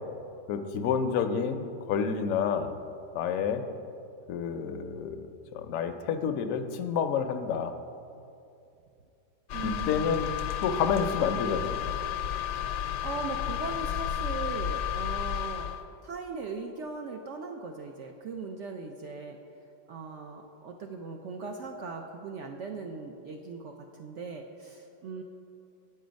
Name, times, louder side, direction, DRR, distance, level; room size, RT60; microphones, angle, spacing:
voice 1, 0.5-2.7 3.1-3.6 4.3-5.3 5.5-7.7 9.6-10.3 10.6-11.8, left 6 dB, 65° left, 7 dB, 0.8 m, -29 dB
sound 1, 9.5-15.8, left 10 dB, 85° left, 1.3 m, -32 dB
voice 2, 9.5-10.3 12.5-12.7 13.0-15.7 16.0-19.4 19.9-25.2, right 4 dB, 75° right, 3 dB, 0.6 m, -39 dB
7.9 x 7.7 x 5.1 m, 2.6 s
omnidirectional pair, 1.8 m